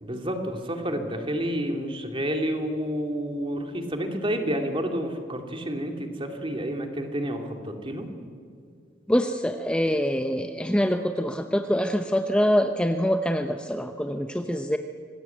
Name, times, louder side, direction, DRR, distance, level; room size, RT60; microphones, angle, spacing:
voice 1, 0.0-8.1, equal, 30° right, 4 dB, 2.6 m, -29 dB
voice 2, 9.1-14.8, equal, 5° left, 6 dB, 0.8 m, -25 dB
25.5 x 19.5 x 9.2 m, 2.3 s
head